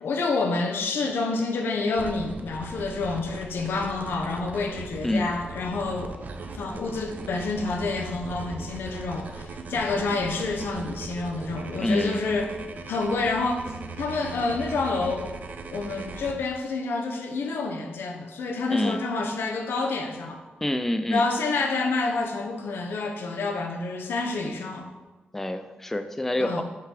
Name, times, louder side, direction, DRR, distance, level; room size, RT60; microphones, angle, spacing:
voice 1, 0.0-6.2 6.5-12.5 12.9-13.7 14.0-15.4 15.7-20.4 21.1-24.9 26.4-26.6, left 3 dB, 85° left, 2 dB, 0.8 m, -28 dB
sound 1, 1.9-16.3, right 3 dB, 55° right, 0.5 m, -39 dB
voice 2, 11.8-12.2 18.7-19.0 20.6-21.3 25.3-26.6, left 1 dB, 10° left, 8 dB, 0.3 m, -26 dB
5.4 x 3.9 x 4.9 m, 1.2 s
wide cardioid pair, 115°, 4 cm